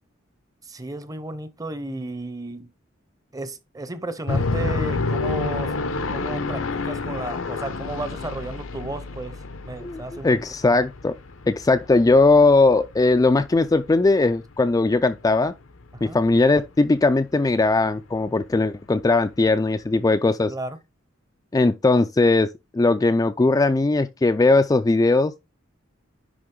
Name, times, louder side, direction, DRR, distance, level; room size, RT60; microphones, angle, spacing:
voice 1, 0.6-2.7 3.3-5.7 6.1-10.4 10.7-10.8 15.9-16.2 20.5-20.8, right 2 dB, 20° right, 0.7 m, -33 dB
sound 1, 4.3-14.3 14.7-14.8 15.2-15.5 15.8-15.9 16.2-16.3 16.9-17.1 17.6-17.7, left 3 dB, 80° left, 0.8 m, -29 dB
voice 2, 9.8-11.2 11.5-15.5 16.0-20.5 21.5-22.5 22.7-25.4, left 3 dB, 20° left, 0.3 m, -19 dB
10.0 x 3.5 x 3.7 m
head